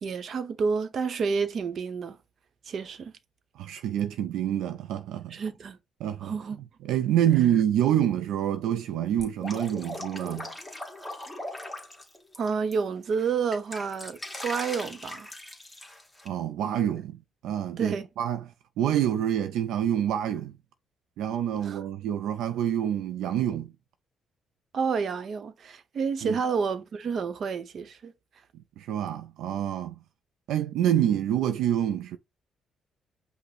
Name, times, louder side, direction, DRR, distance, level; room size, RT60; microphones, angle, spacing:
voice 1, 0.0-2.2 2.7-3.1 5.3-5.8 6.2-6.6 12.4-15.3 17.8-18.1 21.6-21.8 24.7-28.1, right 5 dB, 55° right, 0.7 m, -29 dB
voice 2, 3.6-5.4 6.0-6.4 6.8-10.5 16.2-18.5 18.8-20.6 21.2-23.7 26.2-26.4 28.5-30.0 30.5-32.2, right 10 dB, 85° right, 0.3 m, -27 dB
Drip, 9.2-12.7 13.1-16.3, left 1 dB, 10° left, 1.5 m, -40 dB
5.4 x 2.0 x 4.1 m
cardioid pair, 90°, 0 cm